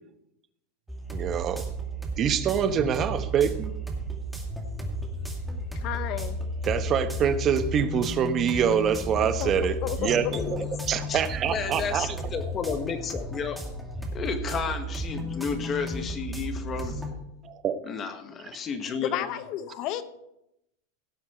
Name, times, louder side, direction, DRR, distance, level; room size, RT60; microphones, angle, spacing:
sound 1, 0.9-17.1, equal, 5° right, 2.3 m, -33 dB
voice 1, 1.1-1.7 2.2-3.7 6.6-10.3 10.9-12.1 17.4-17.8, right 8 dB, 35° right, 11 dB, 1.0 m, -25 dB
voice 2, 5.7-6.4 9.4-10.3 19.0-20.0, left 12 dB, 50° left, 12 dB, 1.1 m, -32 dB
voice 3, 10.3-10.7 11.1-11.2 11.5-13.6 14.1-17.0 17.8-19.3, left 6 dB, 30° left, 8 dB, 1.5 m, -32 dB
17.0 x 7.6 x 4.5 m, 0.84 s
supercardioid pair, 130°, 0 cm